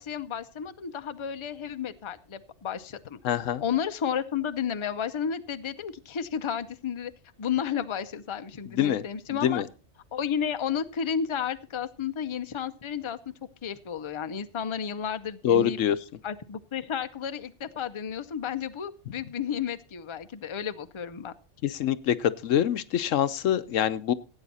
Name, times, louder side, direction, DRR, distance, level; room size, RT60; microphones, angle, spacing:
voice 1, 0.0-3.2 3.6-7.1 7.4-9.6 10.1-13.2 13.6-15.8 16.2-21.3, left 8 dB, 30° left, 10 dB, 0.6 m, -32 dB
voice 2, 3.2-3.6 8.7-9.0 9.3-9.6 15.4-16.0 21.6-24.1, left 10 dB, 90° left, 13 dB, 1.1 m, -25 dB
16.5 x 8.9 x 4.2 m, 0.34 s
omnidirectional pair, 1.3 m